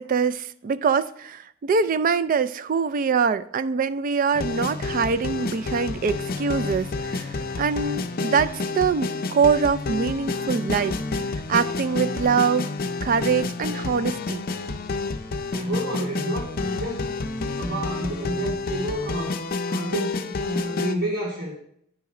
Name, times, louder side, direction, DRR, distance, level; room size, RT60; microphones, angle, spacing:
voice 1, 0.0-11.0 11.5-12.7 13.0-14.5, right 5 dB, 40° right, 0.3 m, -24 dB
sound 1, 4.3-21.0, left 3 dB, 45° left, 0.5 m, -29 dB
voice 2, 15.2-17.1 17.6-19.4 19.7-21.5, right 1 dB, 60° right, 2.5 m, -30 dB
10.0 x 4.1 x 4.8 m
head